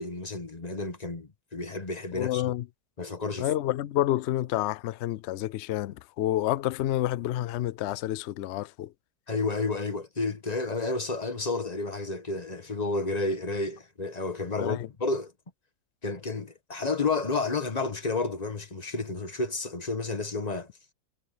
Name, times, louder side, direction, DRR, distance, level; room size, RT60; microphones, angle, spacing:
voice 1, 0.0-2.5 3.0-3.5 9.3-15.3 16.0-20.7, left 3 dB, 25° left, 1.5 m, -31 dB
voice 2, 2.2-2.6 3.4-8.9 14.6-14.9, left 14 dB, 80° left, 0.6 m, -29 dB
omnidirectional pair, 1.7 m